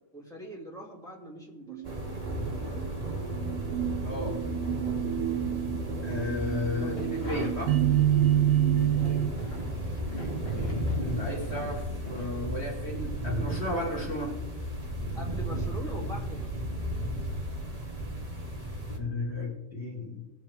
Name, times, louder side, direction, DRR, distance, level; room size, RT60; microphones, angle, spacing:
voice 1, 0.1-2.1 6.8-7.1 9.0-9.3 15.1-16.7, equal, ahead, -3 dB, 2.0 m, -42 dB
sound 1, 1.7-9.3, right 12 dB, 75° right, 1.6 m, -28 dB
sound 2, 1.8-19.0, equal, 15° right, 1.4 m, -34 dB
voice 2, 4.0-4.4 6.0-7.8 10.5-10.7 11.0-14.3 19.0-20.2, left 2 dB, 80° left, -1 dB, 0.5 m, -34 dB
sound 3, 6.7-8.3 8.6-12.7 13.0-13.1, equal, 25° left, 1.8 m, -45 dB
18.0 x 7.3 x 3.5 m, 1.0 s
omnidirectional pair, 3.6 m